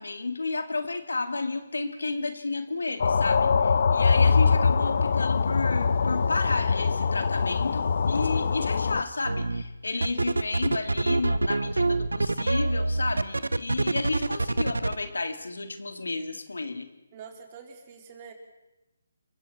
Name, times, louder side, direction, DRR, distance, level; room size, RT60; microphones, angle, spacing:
voice 1, 0.0-16.9, left 3 dB, 75° left, 6 dB, 2.5 m, -32 dB
sound 1, 3.0-9.0, left 5 dB, 55° left, 1.0 m, -23 dB
sound 2, 9.2-9.6 10.0-15.0, right 2 dB, 80° right, 1.0 m, -25 dB
voice 2, 17.1-18.3, right 6 dB, 30° right, 2 dB, 4.4 m, -45 dB
29.5 x 24.0 x 4.4 m, 1.0 s
figure-of-eight pair, 150°, 0 cm